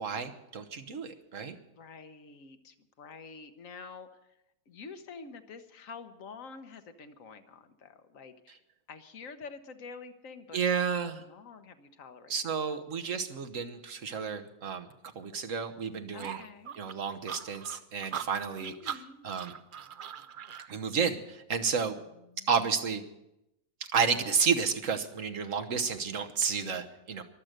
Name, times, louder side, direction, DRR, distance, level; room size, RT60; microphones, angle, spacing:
voice 1, 0.0-1.6 10.5-11.2 12.3-14.9 15.1-16.4 16.8-19.5 20.7-21.9 22.5-23.0 23.9-27.2, right 6 dB, 70° right, 6 dB, 1.5 m, -31 dB
voice 2, 1.7-4.1 4.7-8.6 8.9-12.4 12.6-12.8 16.1-16.8 18.6-19.2 22.0-22.5, left 4 dB, 70° left, 9 dB, 1.4 m, -48 dB
sound 1, 16.2-20.7, right 8 dB, 55° right, 0.6 m, -40 dB
23.0 x 7.7 x 6.6 m, 0.87 s
omnidirectional pair, 1.4 m